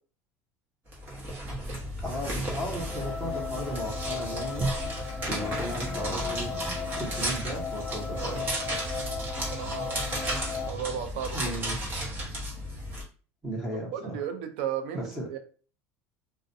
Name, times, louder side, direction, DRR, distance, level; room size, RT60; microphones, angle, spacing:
sound 1, 0.9-13.0, right 1 dB, 30° right, 1.0 m, -34 dB
voice 1, 2.0-4.7 5.2-6.5 7.0-8.5 11.3-11.8 13.4-14.2 14.9-15.3, equal, 5° right, -3 dB, 0.9 m, -35 dB
sound 2, 2.7-10.7, left 5 dB, 20° left, 0.4 m, -36 dB
voice 2, 8.2-8.5 9.5-10.0 10.6-11.6 13.9-15.4, right 8 dB, 85° right, 8 dB, 0.5 m, -35 dB
2.4 x 2.2 x 2.6 m, 0.39 s
cardioid pair, 150°, 6 cm